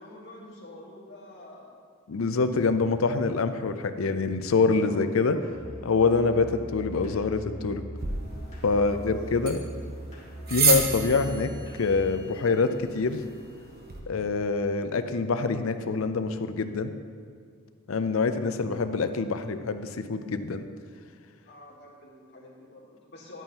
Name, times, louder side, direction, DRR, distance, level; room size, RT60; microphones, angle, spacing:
voice 1, 0.0-1.8 4.7-5.4 6.0-6.4 8.7-9.2 21.4-23.4, left 1 dB, 55° left, -4 dB, 1.9 m, -47 dB
voice 2, 2.1-5.4 5.8-6.5 6.7-7.8 8.6-9.6 10.5-11.5 11.8-13.2 14.1-16.9 17.9-20.6, left 4 dB, 80° left, 10 dB, 0.5 m, -25 dB
Musical instrument, 5.4-12.1, right 1 dB, 35° left, 1.8 m, -41 dB
sound 1, 8.0-14.0, right 4 dB, 50° right, 1.1 m, -31 dB
10.5 x 9.1 x 3.0 m, 2.1 s
head